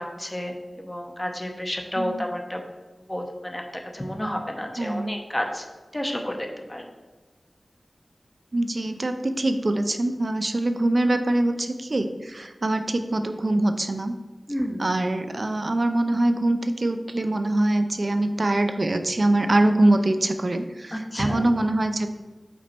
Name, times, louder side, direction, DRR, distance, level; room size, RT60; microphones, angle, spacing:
voice 1, 0.0-2.6 3.1-3.6 3.9-5.6 5.9-6.9 14.5-14.9 20.9-21.4, equal, 20° left, 3 dB, 0.8 m, -30 dB
voice 2, 4.8-5.1 8.5-14.1 14.8-22.1, right 1 dB, 55° right, 8 dB, 0.5 m, -23 dB
5.2 x 4.2 x 4.4 m, 1.3 s
wide cardioid pair, 65°, 0 cm